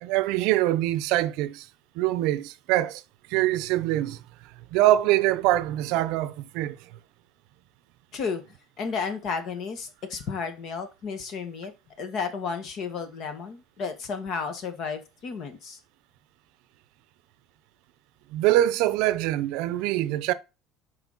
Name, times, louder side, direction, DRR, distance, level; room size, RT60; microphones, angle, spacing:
voice 1, 0.0-1.7 2.0-3.0 3.3-4.2 4.7-6.8 18.3-20.3, right 14 dB, 65° right, 0.6 m, -24 dB
voice 2, 8.8-11.7 12.0-15.8, left 5 dB, 40° left, 1.4 m, -32 dB
8.1 x 5.1 x 4.0 m
cardioid pair, 175°, 0 cm